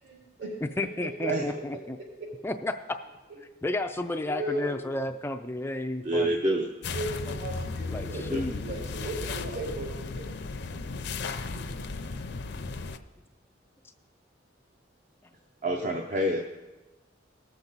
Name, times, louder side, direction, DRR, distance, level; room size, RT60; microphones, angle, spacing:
voice 1, 0.0-1.5 4.2-4.8 6.9-8.2 8.6-10.3 11.5-11.7, right 1 dB, 65° right, -3 dB, 4.3 m, -36 dB
voice 2, 0.8-2.0 2.4-2.8 3.6-6.4 7.9-8.6, left 2 dB, 10° left, 6 dB, 0.3 m, -32 dB
voice 3, 6.0-6.7 8.1-8.4 15.6-16.4, right 1 dB, 40° right, 2 dB, 0.7 m, -27 dB
sound 1, 6.8-13.0, left 4 dB, 60° left, 0.6 m, -35 dB
18.5 x 7.2 x 4.0 m, 1.1 s
head